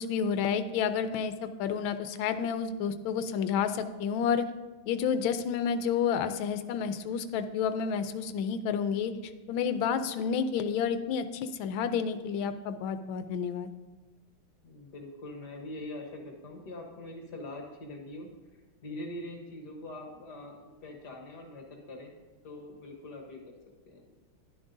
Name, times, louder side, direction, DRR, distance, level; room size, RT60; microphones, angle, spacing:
voice 1, 0.0-4.5 4.9-13.7, left 7 dB, 75° left, 10 dB, 1.3 m, -30 dB
voice 2, 14.6-18.3 18.8-22.1 22.4-23.4 23.9-24.1, left 1 dB, 55° left, 1 dB, 1.6 m, -43 dB
11.0 x 11.0 x 2.6 m, 1.2 s
omnidirectional pair, 2.3 m